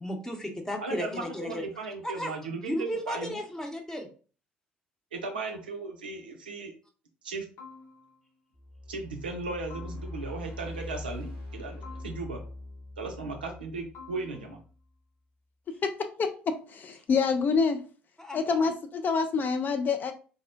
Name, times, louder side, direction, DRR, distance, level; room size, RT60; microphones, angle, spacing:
voice 1, 0.0-1.6 2.0-4.1 18.2-18.4, equal, 10° left, 3 dB, 0.8 m, -34 dB
voice 2, 0.8-3.4 5.1-6.7 7.2-7.5 8.9-12.4 13.0-14.6, right 3 dB, 80° right, 4 dB, 0.4 m, -36 dB
sound 1, 7.6-8.4 9.7-10.5 11.8-12.6 13.9-14.8, left 5 dB, 55° left, 0.9 m, -50 dB
sound 2, 8.5-14.7, left 1 dB, 75° left, 1.5 m, -42 dB
voice 3, 15.8-17.8 18.3-20.1, left 5 dB, 40° left, 7 dB, 0.4 m, -27 dB
3.3 x 2.1 x 2.5 m, 0.38 s
figure-of-eight pair, 50°, 5 cm